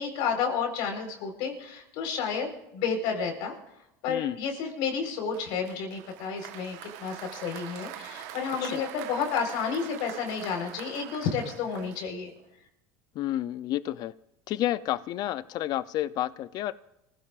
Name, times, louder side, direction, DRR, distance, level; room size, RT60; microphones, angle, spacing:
voice 1, 0.0-3.5 4.0-12.3, left 6 dB, 70° left, 3 dB, 4.3 m, -31 dB
Applause, 5.3-12.4, right 12 dB, 75° right, 1.2 m, -44 dB
voice 2, 13.1-14.1 14.5-16.7, left 13 dB, 55° left, 16 dB, 0.6 m, -30 dB
25.5 x 16.0 x 2.5 m, 0.85 s
supercardioid pair, 105°, 8 cm